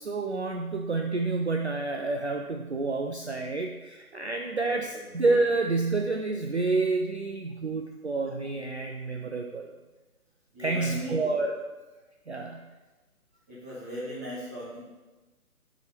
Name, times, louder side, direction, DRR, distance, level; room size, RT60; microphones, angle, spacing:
voice 1, 0.0-9.7 10.6-11.6 12.3-12.7, right 3 dB, 50° right, 2 dB, 0.4 m, -29 dB
voice 2, 4.6-5.1 10.5-11.4 13.5-14.8, equal, 10° right, -9 dB, 1.0 m, -38 dB
4.8 x 4.3 x 5.1 m, 1.2 s
figure-of-eight pair, 145°, 45 cm